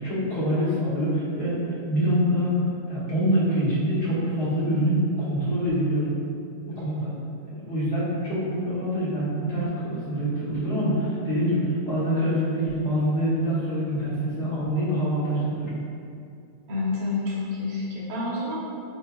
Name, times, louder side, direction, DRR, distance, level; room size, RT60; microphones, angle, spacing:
voice 1, 0.0-2.5 2.9-6.1 6.7-7.1 7.5-15.7, equal, 70° left, -10 dB, 1.9 m, -25 dB
voice 2, 16.7-18.6, left 3 dB, 40° right, -8 dB, 0.9 m, -28 dB
6.6 x 2.7 x 2.2 m, 2.5 s
omnidirectional pair, 1.6 m